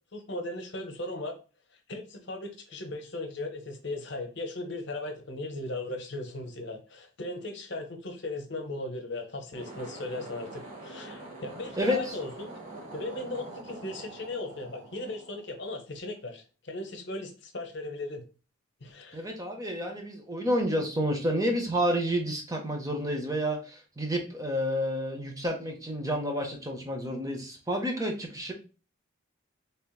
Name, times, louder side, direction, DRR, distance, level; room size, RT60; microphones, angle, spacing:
voice 1, 0.1-1.4 1.9-12.5 12.9-18.2 18.8-19.2, left 2 dB, 55° left, 5 dB, 0.8 m, -37 dB
sound 1, 9.4-15.9, right 2 dB, 40° right, 1.3 m, -45 dB
voice 2, 11.8-12.1 19.1-28.5, equal, 15° right, 2 dB, 0.7 m, -30 dB
4.4 x 3.3 x 2.3 m, 0.33 s
head